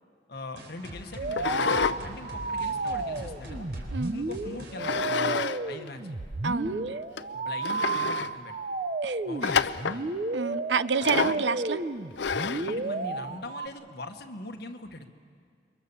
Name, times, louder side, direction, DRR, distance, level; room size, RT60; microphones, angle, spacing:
voice 1, 0.3-3.7 4.1-6.2 7.3-8.5 9.2-10.1 11.2-11.4 12.4-15.1, left 2 dB, 65° left, 5 dB, 1.6 m, -42 dB
sound 1, 0.6-6.0, equal, 70° right, 4.4 m, -44 dB
sound 2, 1.2-13.7, right 3 dB, 45° right, 0.7 m, -32 dB
sound 3, 1.3-2.0 2.4-3.8 4.8-5.6 5.9-6.0 6.6-6.7 7.2-7.3 7.6-8.3 9.4-10.0 11.0-11.4 12.2-12.7, left 6 dB, 90° left, 0.6 m, -29 dB
voice 2, 6.4-7.0 9.0-9.2 10.3-11.8, right 5 dB, 85° right, 14 dB, 0.7 m, -28 dB
28.5 x 23.5 x 7.2 m, 2.1 s
head